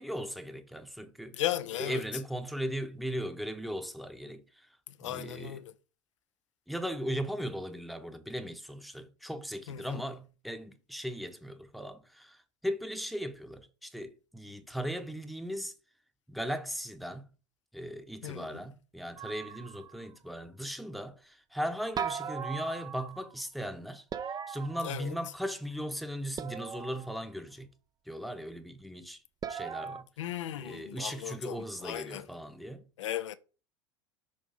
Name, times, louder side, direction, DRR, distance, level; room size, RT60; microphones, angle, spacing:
voice 1, 0.0-1.4 1.8-4.7 5.0-5.6 6.7-15.7 16.3-17.2 17.7-24.0 24.5-27.7 28.1-29.2 29.5-30.1 30.6-32.9, equal, ahead, 0.9 m, -38 dB
voice 2, 1.3-2.0 4.9-5.7 9.7-10.0 18.2-18.6 24.8-25.1 30.2-32.3 33.0-33.3, left 12 dB, 75° left, 0.6 m, -36 dB
sound 1, 19.2-20.1 22.0-23.3 24.1-25.4 26.4-27.2 29.4-30.0, right 7 dB, 25° right, 0.5 m, -39 dB
6.5 x 2.8 x 5.4 m
hypercardioid pair, 80°, 16 cm